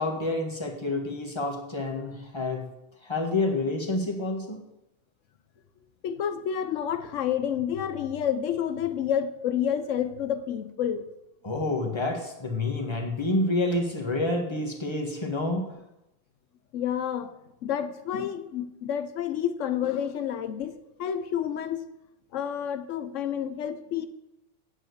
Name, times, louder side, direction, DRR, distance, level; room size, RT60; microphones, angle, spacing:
voice 1, 0.0-2.6 3.0-4.6 11.4-15.7, left 2 dB, 20° left, 1.7 m, -28 dB
voice 2, 6.0-11.0 16.7-17.3 17.6-21.9 22.3-24.1, left 9 dB, 85° left, 1.0 m, -29 dB
9.2 x 7.3 x 8.1 m
omnidirectional pair, 1.2 m